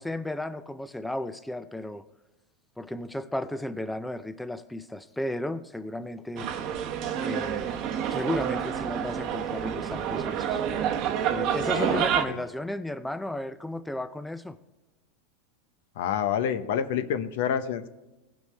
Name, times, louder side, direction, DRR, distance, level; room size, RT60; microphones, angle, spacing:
voice 1, 0.0-2.0 2.8-6.5 7.2-7.8 8.1-10.6 11.3-14.6, left 1 dB, 5° left, 0.4 m, -34 dB
sound 1, 6.4-12.2, right 9 dB, 45° right, 0.9 m, -28 dB
voice 2, 11.6-12.4 16.0-17.9, left 8 dB, 70° left, 0.8 m, -29 dB
17.0 x 6.1 x 3.3 m
supercardioid pair, 125°, 0 cm